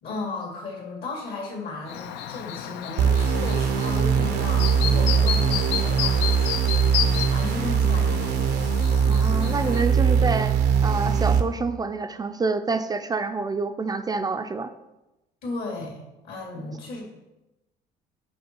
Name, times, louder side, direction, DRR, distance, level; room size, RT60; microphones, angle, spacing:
voice 1, 0.0-6.4 7.0-8.6 15.4-17.0, left 3 dB, 70° left, 0 dB, 2.3 m, -35 dB
Chirp tweet, 1.9-9.8, left 10 dB, 85° left, 0.5 m, -32 dB
sound 1, 3.0-11.4, right 6 dB, 80° right, 0.6 m, -21 dB
voice 2, 9.1-10.6 10.8-14.7, right 4 dB, 25° right, 8 dB, 0.4 m, -27 dB
6.4 x 5.0 x 4.5 m, 0.98 s
cardioid pair, 110°, 17 cm